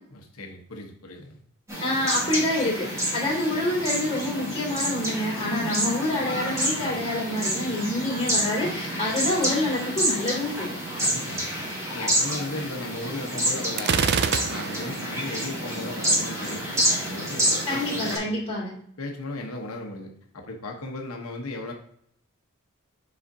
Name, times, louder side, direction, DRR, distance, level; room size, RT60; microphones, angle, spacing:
voice 1, 0.1-1.4 11.0-11.5 11.9-18.3 19.0-21.7, left 2 dB, 80° left, 2 dB, 1.1 m, -36 dB
sound 1, 1.7-18.2, equal, 15° right, 2.0 m, -28 dB
voice 2, 1.8-2.9 3.1-10.7 17.7-18.7, left 1 dB, 25° left, -6 dB, 2.7 m, -27 dB
Gunshot gunfire, 13.8-15.0, right 6 dB, 50° right, 0.4 m, -25 dB
7.6 x 5.0 x 2.7 m, 0.67 s
head